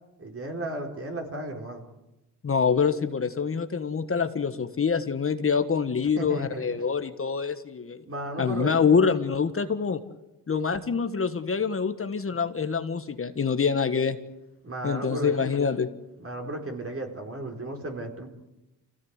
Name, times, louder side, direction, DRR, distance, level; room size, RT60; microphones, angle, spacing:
voice 1, 0.2-1.8 6.1-6.9 8.1-8.8 14.6-15.5 16.2-18.3, right 1 dB, 35° right, 2 dB, 4.5 m, -34 dB
voice 2, 2.4-8.0 8.4-10.0 10.5-14.2 14.8-15.9, left 6 dB, 35° left, 9 dB, 1.5 m, -25 dB
26.5 x 16.5 x 8.2 m, 0.97 s
cardioid pair, 90°, 39 cm